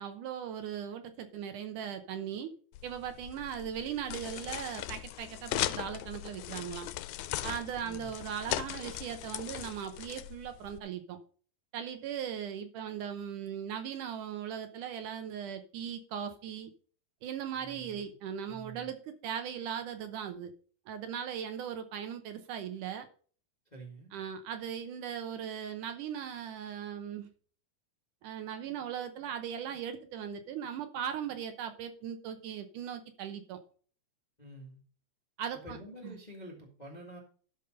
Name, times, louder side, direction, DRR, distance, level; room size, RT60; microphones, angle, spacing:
voice 1, 0.0-2.5 2.8-6.9 7.4-11.2 11.7-16.7 17.2-20.5 20.9-23.1 24.1-27.3 28.2-33.6 35.4-35.8 36.0-36.1, right 8 dB, 70° right, 8 dB, 2.2 m, -38 dB
sound 1, 2.7-10.8, left 15 dB, 80° left, 2.2 m, -39 dB
voice 2, 7.8-8.2 17.5-18.1 18.5-18.9 23.6-24.1 34.4-34.8 35.5-37.2, right 1 dB, 20° left, 0 dB, 1.1 m, -48 dB
12.5 x 5.4 x 5.2 m, 0.43 s
omnidirectional pair, 4.1 m